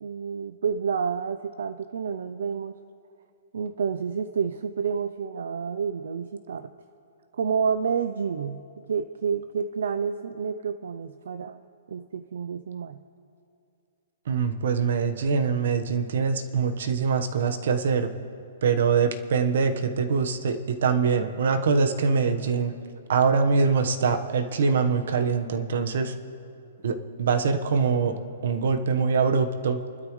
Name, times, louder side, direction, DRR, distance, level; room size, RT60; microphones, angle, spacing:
voice 1, 0.0-2.8 3.5-6.7 7.3-11.6 11.9-13.0, right 6 dB, 75° right, 10 dB, 0.6 m, -29 dB
voice 2, 14.3-18.1 18.6-22.7 23.1-26.1 26.8-28.2 28.4-29.8, right 5 dB, 60° right, 7 dB, 1.3 m, -24 dB
28.5 x 12.5 x 3.2 m, 2.6 s
hypercardioid pair, 170°, 0 cm